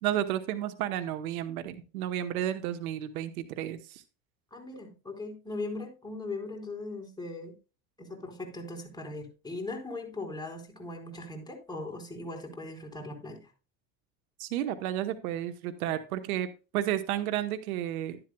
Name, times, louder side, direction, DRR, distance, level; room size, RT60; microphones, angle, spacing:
voice 1, 0.0-4.0 14.4-16.5 16.7-18.2, right 12 dB, 90° right, 10 dB, 1.1 m, -32 dB
voice 2, 4.5-7.5 8.0-13.5, left 2 dB, 10° left, 1 dB, 4.5 m, -39 dB
12.0 x 11.0 x 2.2 m, 0.31 s
supercardioid pair, 90°, 42 cm